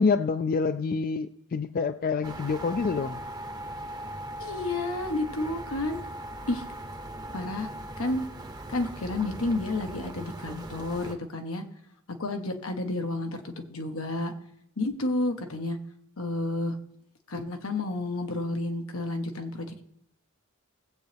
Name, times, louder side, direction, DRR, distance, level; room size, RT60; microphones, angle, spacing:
voice 1, 0.0-3.2, left 4 dB, 45° left, 11 dB, 0.4 m, -27 dB
sound 1, 2.2-11.2, right 1 dB, 20° right, 0.8 m, -39 dB
voice 2, 4.4-6.0 6.5-6.6 7.3-7.7 8.0-8.2 8.7-11.6 12.2-14.3 14.8-15.8 16.2-16.7 17.3-19.8, left 2 dB, 85° left, 5 dB, 1.2 m, -31 dB
18.0 x 7.8 x 3.4 m, 0.77 s
head